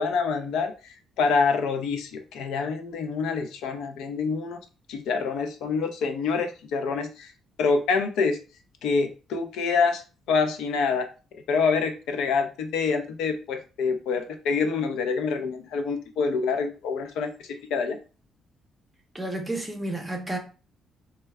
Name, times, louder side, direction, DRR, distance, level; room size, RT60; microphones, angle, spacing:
voice 1, 0.0-4.6 4.9-7.3 7.6-8.4 8.8-10.0 10.3-11.1 11.5-18.0, left 5 dB, 90° left, 0.5 m, -26 dB
voice 2, 19.1-20.4, right 1 dB, 10° right, 0.7 m, -31 dB
4.4 x 2.1 x 2.2 m
cardioid pair, 145°, 0 cm